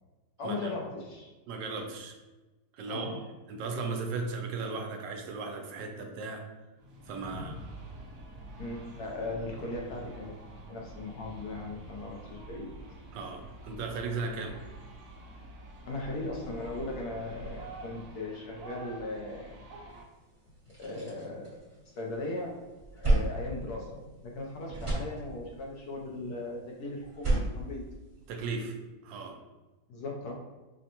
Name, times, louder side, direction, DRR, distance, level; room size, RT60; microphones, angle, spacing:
voice 1, 0.4-1.3 2.9-3.2 7.3-7.5 8.6-10.3 10.7-12.7 15.8-19.6 20.8-21.6 22.0-22.7 23.0-27.8 29.9-30.3, left 2 dB, 70° left, -1 dB, 1.0 m, -38 dB
voice 2, 1.5-2.2 2.7-3.2 3.5-6.4 7.1-7.6 13.1-14.6 28.3-28.7 29.0-29.4, right 4 dB, 80° right, 3 dB, 1.3 m, -36 dB
sound 1, 6.8-20.0, right 2 dB, 65° right, 0.9 m, -47 dB
sound 2, 20.0-20.1 20.5-22.2 22.5-24.4 24.6-25.7 27.0-28.6, right 2 dB, 20° right, 1.0 m, -32 dB
5.1 x 2.1 x 2.8 m, 1.1 s
omnidirectional pair, 2.0 m